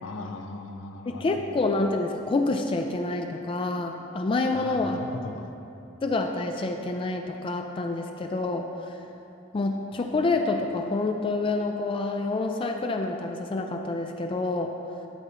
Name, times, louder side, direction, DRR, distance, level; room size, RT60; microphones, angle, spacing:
voice 1, 0.0-1.4 4.5-5.5, left 2 dB, 90° left, 6 dB, 0.5 m, -38 dB
voice 2, 1.1-5.0 6.0-8.9 9.5-14.7, left 3 dB, 25° left, 4 dB, 0.3 m, -27 dB
11.5 x 4.1 x 4.3 m, 2.9 s
head